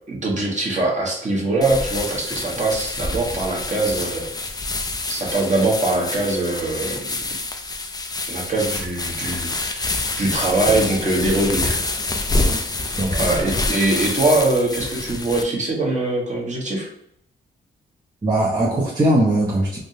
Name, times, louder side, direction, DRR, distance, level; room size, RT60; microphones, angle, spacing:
voice 1, 0.1-4.3 5.1-7.2 8.3-11.8 13.1-16.9, right 2 dB, 40° right, -2 dB, 1.2 m, -22 dB
sound 1, 1.6-15.4, left 2 dB, 20° left, 0.4 m, -26 dB
voice 2, 13.0-13.3 18.2-19.8, right 1 dB, 20° right, -5 dB, 0.8 m, -20 dB
3.5 x 2.3 x 2.7 m, 0.74 s
cardioid pair, 65°, 20 cm